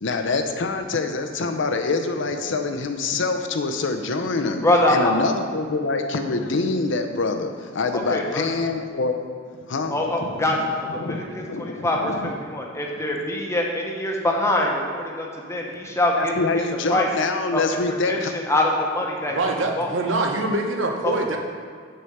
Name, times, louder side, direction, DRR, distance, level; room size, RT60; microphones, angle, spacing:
voice 1, 0.0-9.2 9.6-10.7 10.9-12.4 13.2-13.3 16.2-18.3, left 3 dB, 70° left, 6 dB, 0.7 m, -25 dB
voice 2, 4.6-5.1 7.9-8.5 9.9-11.0 11.3-12.1 12.4-16.6 16.9-17.1 17.5-19.4 19.8-19.9 21.0-21.1, left 1 dB, 15° left, -1 dB, 1.0 m, -24 dB
voice 3, 19.3-21.4, right 2 dB, 75° right, 3 dB, 1.0 m, -24 dB
6.7 x 4.5 x 6.5 m, 2.1 s
head